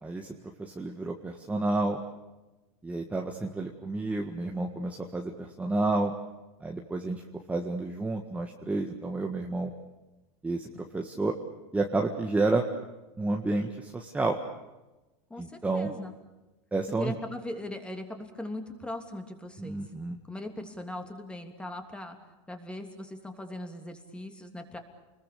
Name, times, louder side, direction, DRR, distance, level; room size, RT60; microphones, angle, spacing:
voice 1, 0.0-2.0 2.8-6.1 6.6-7.2 7.5-9.7 10.4-11.3 11.7-12.6 13.2-14.4 15.4-15.9 16.7-17.1 19.6-20.2, right 2 dB, 10° right, 2 dB, 1.7 m, -30 dB
voice 2, 15.3-16.2 17.0-19.8 20.3-22.2 22.5-24.8, left 1 dB, 5° left, 5 dB, 3.1 m, -39 dB
29.5 x 21.5 x 7.0 m, 1.1 s
supercardioid pair, 135°, 16 cm